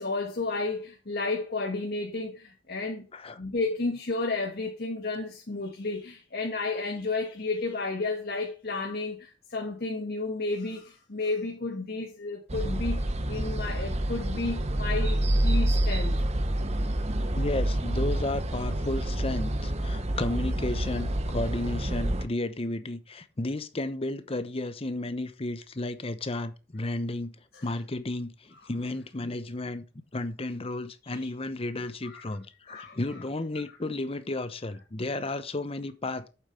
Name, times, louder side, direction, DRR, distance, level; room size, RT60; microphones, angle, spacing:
voice 1, 0.0-3.0 3.4-16.1 27.5-27.6 32.0-32.2 32.7-33.0, left 3 dB, 55° left, 1.7 m, -32 dB
sound 1, 12.5-22.3, right 1 dB, 35° right, 1.0 m, -28 dB
voice 2, 17.3-27.3 27.6-29.8 30.1-36.3, left 2 dB, 30° left, 0.8 m, -33 dB
8.8 x 7.6 x 3.3 m
head